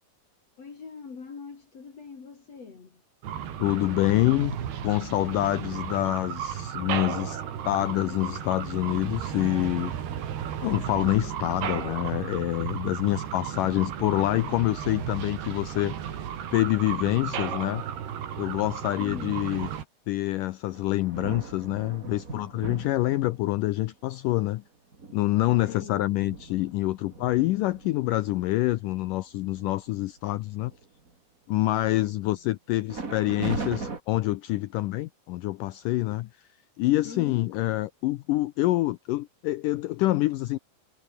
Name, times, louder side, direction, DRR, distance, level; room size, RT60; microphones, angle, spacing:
voice 1, 0.6-3.0 19.0-19.7 25.5-26.1 31.7-32.5 37.0-37.6, left 5 dB, 40° left, 4.0 m, -43 dB
sound 1, 3.2-19.8, right 9 dB, 80° right, 4.6 m, -34 dB
voice 2, 3.6-4.6 4.8-9.9 10.6-15.9 16.5-17.8 18.4-19.7 20.1-24.6 25.1-30.7 31.5-36.3 36.8-40.6, left 17 dB, 90° left, 1.9 m, -26 dB
sound 2, 20.7-23.6 24.3-24.4 24.9-28.5 29.0-29.2 29.5-29.9 30.3-31.1 32.9-34.0, right 4 dB, 25° right, 2.5 m, -39 dB
omnidirectional pair, 4.6 m